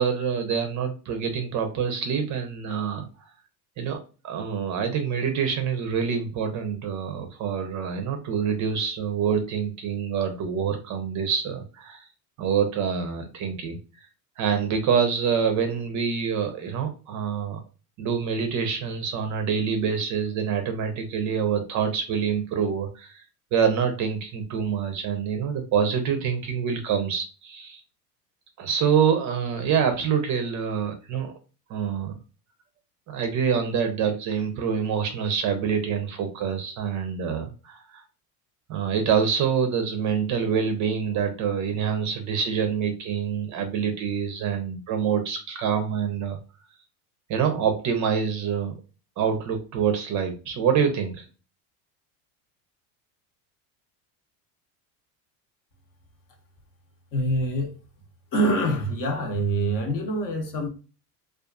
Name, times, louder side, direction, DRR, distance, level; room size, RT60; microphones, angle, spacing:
voice 1, 0.0-3.1 3.8-4.0 4.2-12.0 12.4-13.8 14.4-17.6 18.0-23.2 23.5-27.8 28.6-31.3 31.7-32.1 33.1-38.0 38.7-46.4 47.3-48.7 49.2-51.3, right 7 dB, 40° right, 0.5 m, -26 dB
voice 2, 57.1-57.8 58.3-60.7, right 1 dB, 40° left, 0.8 m, -25 dB
2.4 x 2.4 x 2.3 m
supercardioid pair, 130°, 48 cm